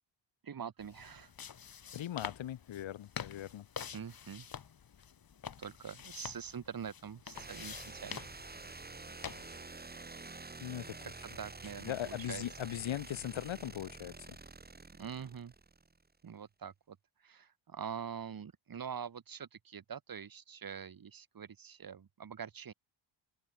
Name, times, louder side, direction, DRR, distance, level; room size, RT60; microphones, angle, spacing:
voice 1, 0.4-1.3 3.9-4.5 5.6-8.2 11.0-11.1 11.4-12.4 15.0-15.5 16.2-22.7, right 7 dB, 45° right, 7.6 m, -44 dB
sound 1, 0.8-9.6, left 7 dB, 45° left, 4.6 m, -47 dB
voice 2, 1.9-3.7 10.6-11.2 11.8-14.4, left 12 dB, 70° left, 3.5 m, -40 dB
sound 2, 7.3-16.1, right 3 dB, 20° right, 5.0 m, -49 dB
open air
cardioid pair, 120°, 48 cm